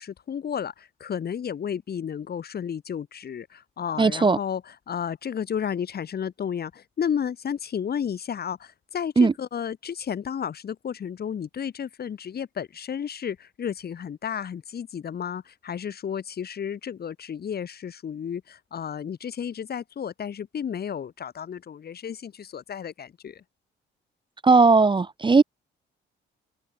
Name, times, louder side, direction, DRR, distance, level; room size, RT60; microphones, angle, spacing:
voice 1, 0.0-23.4, left 8 dB, 50° left, 3.2 m, -32 dB
voice 2, 4.0-4.4 9.2-9.3 24.4-25.4, right 4 dB, 25° right, 1.1 m, -17 dB
cardioid pair, 90°, 20 cm